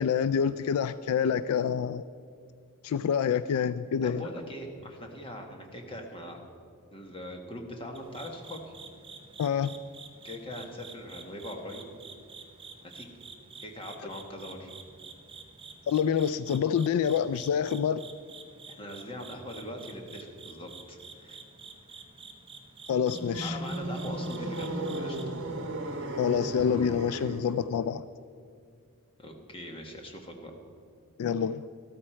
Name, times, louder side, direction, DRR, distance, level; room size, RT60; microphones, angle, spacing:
voice 1, 0.0-2.0 2.8-4.2 9.4-9.7 15.9-18.0 22.9-23.6 26.2-28.0 31.2-31.6, left 7 dB, 75° left, 15 dB, 0.3 m, -27 dB
voice 2, 4.0-6.4 6.9-8.7 10.2-11.8 12.8-13.1 13.6-14.7 18.7-21.4 21.9-22.1 23.4-25.2 29.2-30.5, left 1 dB, 25° left, 2 dB, 1.4 m, -41 dB
sound 1, 7.9-25.2, right 4 dB, 25° right, 0.9 m, -49 dB
sound 2, 23.0-27.7, right 1 dB, 55° right, 1.3 m, -35 dB
13.5 x 13.0 x 4.4 m, 2.3 s
head